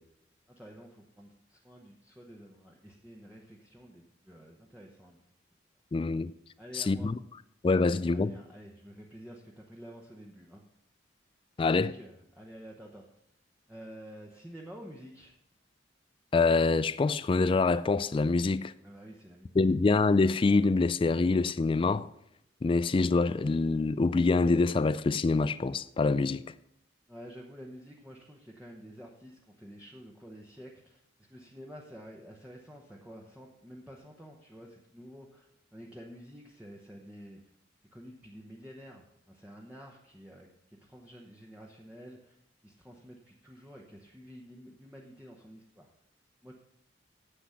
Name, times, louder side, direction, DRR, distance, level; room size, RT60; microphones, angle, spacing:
voice 1, 0.5-5.2 6.6-7.1 8.1-10.6 11.6-13.2 13.7-15.4 18.8-19.7 27.1-35.5 35.7-37.4 37.9-42.4 42.6-45.9 46.4-46.5, equal, 10° right, 1.0 m, -50 dB
voice 2, 5.9-6.3 6.7-7.2 7.6-8.3 11.6-11.9 16.3-18.7 19.6-22.1 22.6-26.4, left 3 dB, 30° left, 0.3 m, -25 dB
10.0 x 7.8 x 5.7 m
head